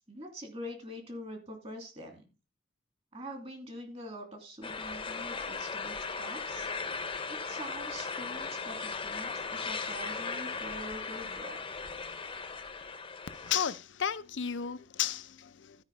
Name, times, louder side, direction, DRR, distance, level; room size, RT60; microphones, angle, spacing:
voice 1, 0.1-2.2 3.1-6.7 7.3-11.6, equal, 35° right, 2.6 m, -44 dB
sound 1, 4.6-13.7, left 4 dB, 30° left, 0.9 m, -37 dB
voice 2, 13.3-15.8, left 9 dB, 70° left, 0.6 m, -33 dB
12.5 x 5.1 x 5.3 m
head